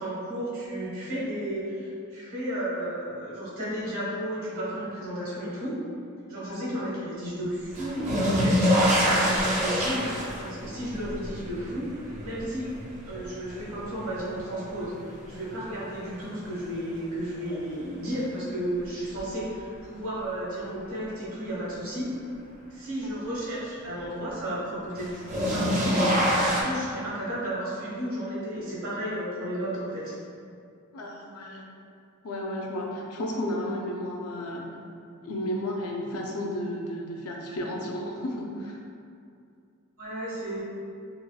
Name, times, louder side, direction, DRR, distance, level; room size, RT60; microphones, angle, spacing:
voice 1, 0.0-5.7 6.3-8.7 8.9-11.8 12.2-12.7 13.1-14.9 15.3-22.1 22.7-26.1 26.4-30.1 40.0-40.6, right 1 dB, 90° right, -8 dB, 1.2 m, -33 dB
sound 1, 7.7-14.8 15.2-15.9 17.5-17.6 19.2-19.3 25.0-26.6, equal, 35° right, 0.5 m, -26 dB
voice 2, 30.9-31.6 32.2-34.7 35.2-38.8, left 1 dB, 85° left, -1 dB, 0.5 m, -33 dB
4.1 x 2.2 x 2.3 m, 2.4 s
head